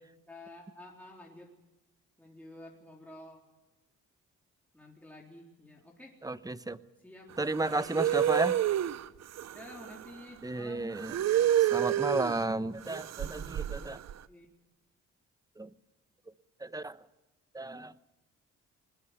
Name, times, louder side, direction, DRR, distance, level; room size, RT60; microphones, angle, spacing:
voice 1, 0.3-1.5 2.2-3.4 4.7-6.2 7.0-7.3 9.5-11.6 14.3-14.5, left 1 dB, 5° left, -2 dB, 3.8 m, -50 dB
voice 2, 6.2-6.8 7.4-8.6 10.4-11.1 11.7-14.0 15.6-15.7 16.6-17.0 17.5-17.9, right 2 dB, 10° right, 14 dB, 0.9 m, -33 dB
sound 1, 7.4-10.1 10.9-12.4 12.8-14.1, right 11 dB, 60° right, 0.8 m, -29 dB
21.5 x 20.5 x 6.7 m, 1.0 s
cardioid pair, 90°, 30 cm